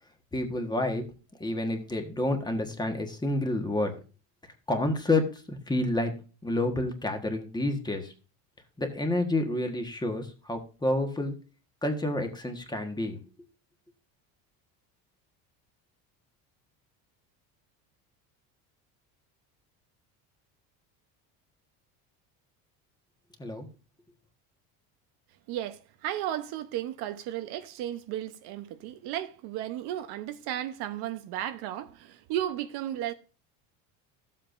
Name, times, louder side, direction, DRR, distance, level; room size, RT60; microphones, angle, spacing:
voice 1, 0.3-1.0 1.4-3.9 4.7-6.1 6.4-8.1 8.8-11.3 11.8-13.2 23.4-23.7, left 1 dB, 10° left, 1.4 m, -29 dB
voice 2, 25.5-33.1, right 12 dB, 70° right, 0.9 m, -34 dB
13.5 x 7.6 x 2.6 m
cardioid pair, 125°, 40 cm